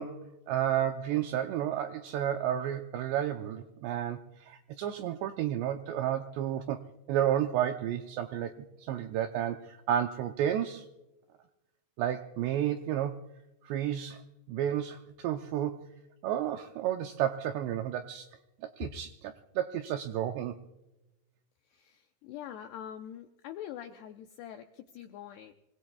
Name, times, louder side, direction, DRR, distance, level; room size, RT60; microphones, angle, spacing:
voice 1, 0.0-6.8 7.1-10.9 12.0-13.2 13.6-15.8 16.2-18.3 18.6-20.6, right 10 dB, 90° right, 6 dB, 2.5 m, -32 dB
voice 2, 21.7-25.5, left 10 dB, 85° left, 5 dB, 2.3 m, -44 dB
26.5 x 20.0 x 2.3 m, 0.96 s
omnidirectional pair, 5.8 m